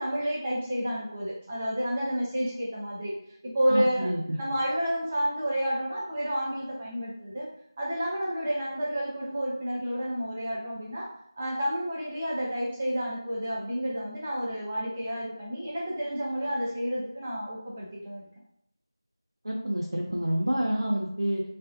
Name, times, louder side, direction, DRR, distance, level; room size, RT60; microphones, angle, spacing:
voice 1, 0.0-3.1 3.4-4.1 4.4-7.5 7.8-18.3, equal, 15° right, -5 dB, 0.4 m, -30 dB
voice 2, 3.7-4.4 19.4-21.4, equal, 85° right, -3 dB, 0.6 m, -28 dB
2.9 x 2.4 x 2.4 m, 0.75 s
figure-of-eight pair, 170°, 2 cm